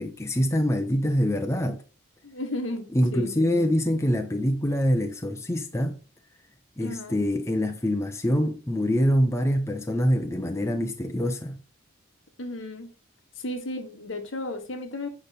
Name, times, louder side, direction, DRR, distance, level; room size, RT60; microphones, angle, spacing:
voice 1, 0.0-1.8 2.9-6.0 6.8-11.6, equal, 15° left, 0.6 m, -25 dB
voice 2, 2.2-2.8 3.1-3.7 6.8-7.2 12.4-12.9 13.4-15.1, left 2 dB, 65° left, 1.3 m, -34 dB
8.6 x 5.2 x 4.1 m
head